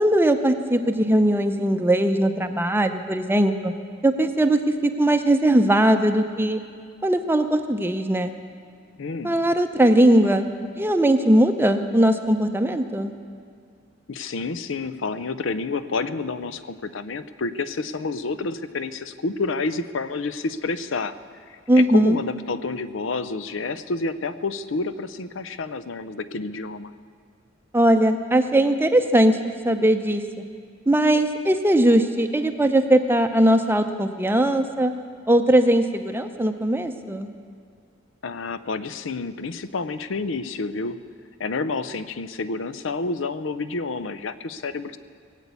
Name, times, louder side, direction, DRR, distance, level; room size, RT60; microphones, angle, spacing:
voice 1, 0.0-3.7 4.0-6.6 7.0-8.3 9.2-10.4 10.8-13.1 21.7-22.2 27.7-30.2 30.9-34.9 35.3-37.3, right 1 dB, 10° right, 7 dB, 0.6 m, -19 dB
voice 2, 9.0-9.4 14.1-21.2 21.5-26.9 38.2-41.0 41.4-45.0, left 3 dB, 75° left, 13 dB, 0.6 m, -29 dB
18.5 x 8.3 x 8.3 m, 2.2 s
head